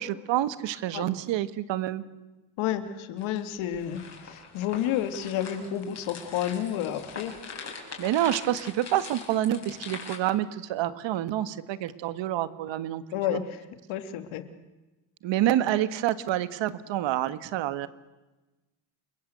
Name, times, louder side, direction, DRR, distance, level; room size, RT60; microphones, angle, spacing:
voice 1, 0.0-2.0 8.0-13.0 13.3-13.4 15.2-17.9, right 12 dB, 65° right, 13 dB, 1.7 m, -28 dB
voice 2, 2.6-7.4 13.1-13.6 13.9-14.4, left 10 dB, 75° left, 9 dB, 2.6 m, -30 dB
sound 1, 3.2-10.2, left 5 dB, 35° left, 6.5 m, -43 dB
29.5 x 22.0 x 8.1 m, 1.1 s
cardioid pair, 125°, 49 cm